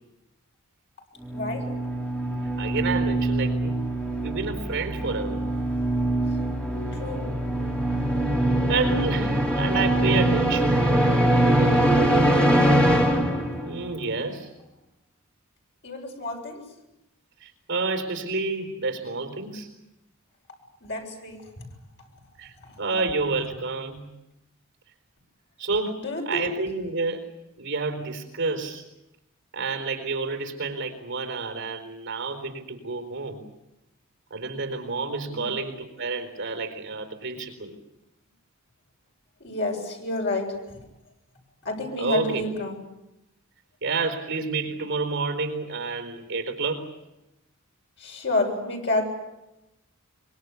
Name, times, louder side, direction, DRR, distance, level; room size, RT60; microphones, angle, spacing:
sound 1, 1.2-13.9, right 1 dB, 5° left, 3.5 m, -23 dB
voice 1, 1.3-1.6 7.0-7.2 12.1-12.7 15.8-16.6 20.8-21.4 22.7-22.8 26.0-26.5 35.3-35.5 39.4-40.5 41.6-42.7 48.0-49.0, left 2 dB, 55° left, 1 dB, 7.5 m, -29 dB
voice 2, 2.6-3.8 4.2-5.4 8.7-10.9 13.6-14.5 17.4-19.7 22.4-24.1 25.6-27.3 27.6-28.8 29.5-33.4 34.3-37.8 42.0-42.4 43.8-46.9, right 3 dB, 60° right, 7 dB, 4.2 m, -29 dB
24.5 x 23.5 x 8.4 m, 0.91 s
head